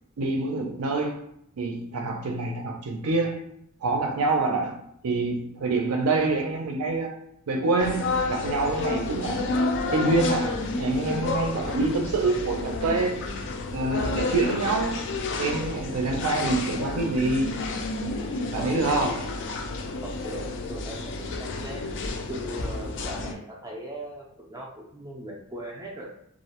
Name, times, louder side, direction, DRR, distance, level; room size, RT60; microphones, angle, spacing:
voice 1, 0.2-1.3 1.6-3.4 3.8-4.8 5.0-7.2 7.5-9.5 9.9-13.3 13.7-15.1 15.4-17.5 18.5-19.3 24.0-24.1, right 3 dB, 80° right, 0.5 m, -26 dB
sound 1, 7.8-23.3, left 3 dB, 55° left, 0.3 m, -30 dB
voice 2, 18.5-19.2 20.0-21.8 22.3-26.1, equal, 15° right, 0.3 m, -39 dB
2.4 x 2.1 x 2.8 m
head